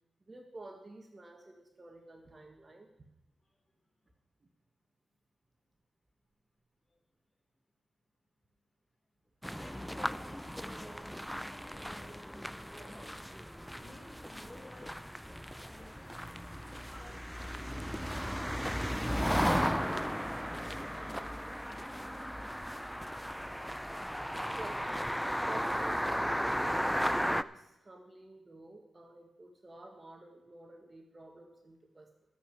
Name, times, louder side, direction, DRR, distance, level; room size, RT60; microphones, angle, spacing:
voice 1, 0.3-2.9 24.5-25.1 25.4-32.1, right 2 dB, 35° right, 4 dB, 1.4 m, -51 dB
sound 1, 9.4-27.4, equal, ahead, 0.4 m, -35 dB
voice 2, 9.5-13.2 13.7-15.0 15.6-16.1 16.6-23.2, left 1 dB, 25° left, -1 dB, 4.3 m, -56 dB
12.5 x 7.2 x 7.4 m, 0.90 s
cardioid pair, 80°, 0 cm